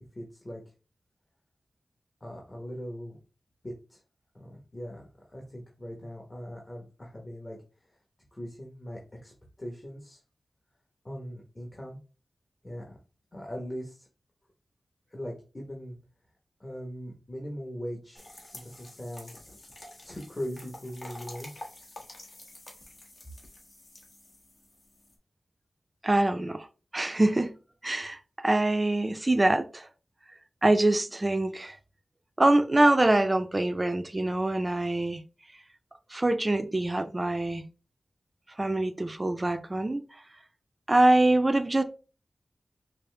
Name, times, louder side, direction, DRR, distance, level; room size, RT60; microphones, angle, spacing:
voice 1, 0.1-0.6 2.2-3.2 3.6-4.0 4.3-8.0 8.3-9.3 9.6-10.2 11.0-12.0 12.6-13.0 13.3-14.1 15.1-16.0 16.6-18.3 18.5-19.3 20.0-21.5, equal, 30° left, 1.1 m, -40 dB
sound 1, 18.2-25.2, left 1 dB, 55° left, 1.3 m, -48 dB
voice 2, 26.0-26.7 26.9-27.5 27.8-29.9 30.6-31.8 32.4-35.2 36.1-37.6 38.6-40.0 40.9-41.8, right 2 dB, 25° right, 0.5 m, -24 dB
5.2 x 2.1 x 3.3 m
wide cardioid pair, 75°, 0 cm